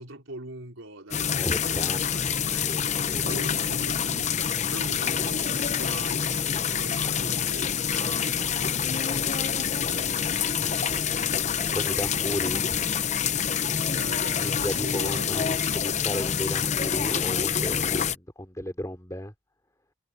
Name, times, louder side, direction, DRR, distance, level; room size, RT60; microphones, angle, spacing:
voice 1, 0.0-12.5 13.9-15.6, right 2 dB, 80° right, 3.7 m, -43 dB
sound 1, 1.1-18.2, left 7 dB, 35° left, 0.7 m, -27 dB
voice 2, 1.3-2.1 2.6-3.4 11.7-12.8 14.4-19.3, equal, 15° left, 3.4 m, -34 dB
head